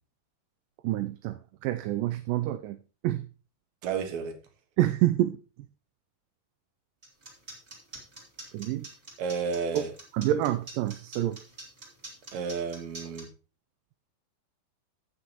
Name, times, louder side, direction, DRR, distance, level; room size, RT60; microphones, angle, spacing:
voice 1, 0.8-2.8 3.0-3.3 4.8-5.4 8.5-8.9 9.7-9.8 10.1-11.4, right 14 dB, 80° right, 2.0 m, -27 dB
voice 2, 3.8-4.3 9.2-9.9 12.3-13.3, right 5 dB, 60° right, 2.4 m, -31 dB
sound 1, 7.0-13.2, right 2 dB, 20° right, 2.6 m, -44 dB
17.0 x 6.1 x 2.9 m
omnidirectional pair, 4.2 m